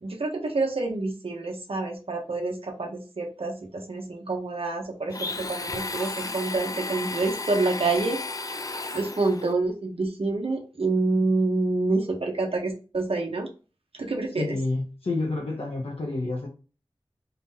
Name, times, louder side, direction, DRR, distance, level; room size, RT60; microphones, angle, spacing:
voice 1, 0.0-8.5 8.9-13.5 14.0-14.6, right 3 dB, 80° right, 0.9 m, -27 dB
Domestic sounds home sounds, 5.1-9.5, left 3 dB, 40° left, 0.4 m, -33 dB
voice 2, 14.4-16.5, left 2 dB, 85° left, 1.0 m, -29 dB
4.0 x 2.7 x 3.8 m
wide cardioid pair, 55°, 10 cm